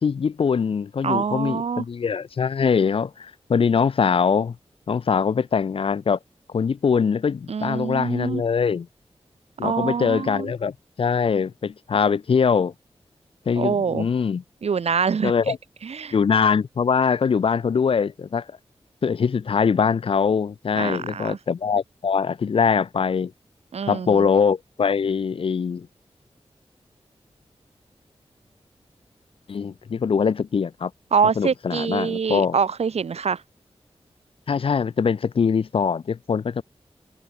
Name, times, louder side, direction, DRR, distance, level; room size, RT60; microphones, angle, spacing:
voice 1, 0.0-4.6 4.9-6.2 6.5-8.9 9.6-12.7 13.5-14.4 15.2-15.6 16.1-18.4 19.0-23.3 23.9-25.9 29.5-30.9 31.4-32.6 34.5-36.6, left 6 dB, 55° left, 0.4 m, -22 dB
voice 2, 1.0-1.8 7.5-8.4 9.6-10.5 13.6-14.1 14.6-15.3 15.8-16.1 20.7-21.4 23.7-24.3 31.1-33.4, right 6 dB, 75° right, 0.8 m, -25 dB
open air
wide cardioid pair, 80°, 11 cm